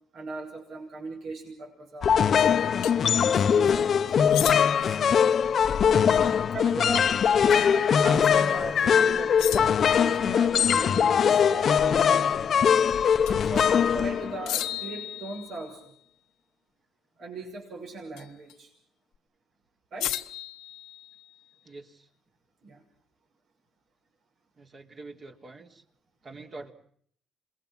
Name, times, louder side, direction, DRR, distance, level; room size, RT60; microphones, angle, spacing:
voice 1, 0.1-5.0 6.2-12.8 13.3-15.9 17.2-18.7 19.9-20.2 22.6-22.8, right 2 dB, 70° right, 0 dB, 6.1 m, -39 dB
sound 1, 2.0-14.7, left 7 dB, 55° left, 0.9 m, -22 dB
sound 2, 2.8-3.0 4.3-5.0 7.5-7.8 8.1-8.2 9.4-10.0 13.3-13.8 14.5-15.8 18.2-18.5 20.0-21.4, left 13 dB, 85° left, 1.1 m, -35 dB
voice 2, 21.6-22.1 24.6-25.8 26.2-26.7, right 3 dB, 45° right, 2 dB, 3.6 m, -45 dB
27.5 x 21.0 x 6.1 m, 0.62 s
supercardioid pair, 75°, 0 cm